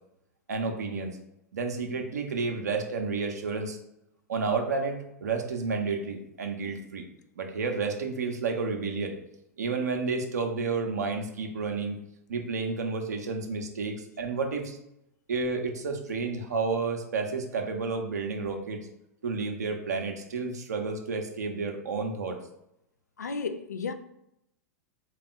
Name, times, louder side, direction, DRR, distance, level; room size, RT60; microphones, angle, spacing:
voice 1, 0.5-1.2 1.5-3.8 4.3-7.1 7.4-9.2 9.6-12.0 12.3-14.8 15.3-18.9 19.2-22.4, right 4 dB, 75° right, 0.7 m, -31 dB
voice 2, 23.2-23.9, left 4 dB, 85° left, 0.4 m, -33 dB
3.6 x 2.4 x 4.0 m
figure-of-eight pair, 95°, 9 cm